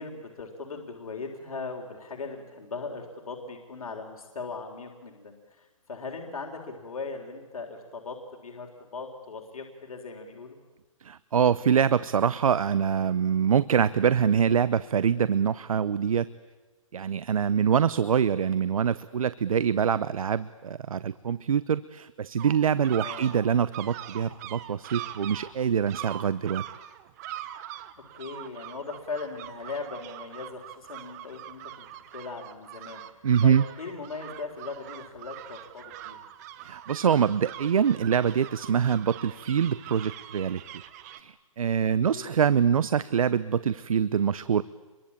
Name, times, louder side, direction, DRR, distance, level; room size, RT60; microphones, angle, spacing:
voice 1, 0.0-10.6 23.0-23.3 28.1-31.9 32.1-33.0 33.4-36.2 41.9-42.4, left 4 dB, 80° left, 2 dB, 4.0 m, -39 dB
voice 2, 11.0-16.3 16.9-26.6 33.2-33.6 36.6-40.6 41.2-44.6, right 7 dB, 75° right, 17 dB, 0.8 m, -24 dB
sound 1, 22.4-41.2, right 13 dB, 30° right, 1.1 m, -43 dB
27.5 x 23.0 x 8.7 m, 1.2 s
hypercardioid pair, 160°, 18 cm